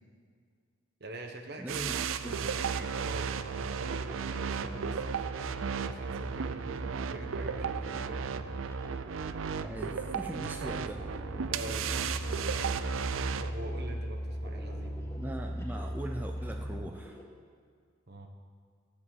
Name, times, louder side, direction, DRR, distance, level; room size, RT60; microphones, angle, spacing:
voice 1, 1.0-5.2 5.6-8.5 10.4-10.9 11.5-12.8 13.4-15.0 18.1-18.3, right 2 dB, 55° right, 4 dB, 1.3 m, -45 dB
voice 2, 1.6-1.9 2.2-2.4 9.6-11.0 15.2-17.2, right 1 dB, 10° right, 2 dB, 0.5 m, -40 dB
sound 1, 1.7-13.5, right 6 dB, 85° right, 0.5 m, -34 dB
sound 2, 4.1-17.2, equal, 15° left, 2.2 m, -52 dB
sound 3, 4.5-16.8, equal, 40° left, 1.0 m, -40 dB
15.0 x 5.3 x 7.9 m, 2.1 s
head